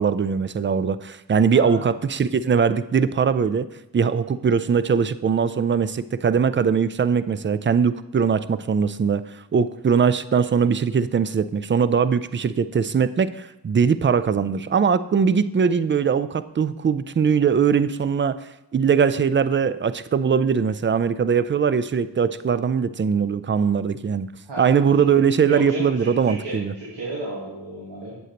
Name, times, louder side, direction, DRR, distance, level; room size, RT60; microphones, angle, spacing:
voice 1, 0.0-3.7 3.9-24.3 24.6-26.7, right 6 dB, 30° right, 14 dB, 0.4 m, -21 dB
voice 2, 24.4-28.1, right 1 dB, 85° right, -6 dB, 1.6 m, -33 dB
8.0 x 7.8 x 2.9 m, 0.89 s
cardioid pair, 50°, 42 cm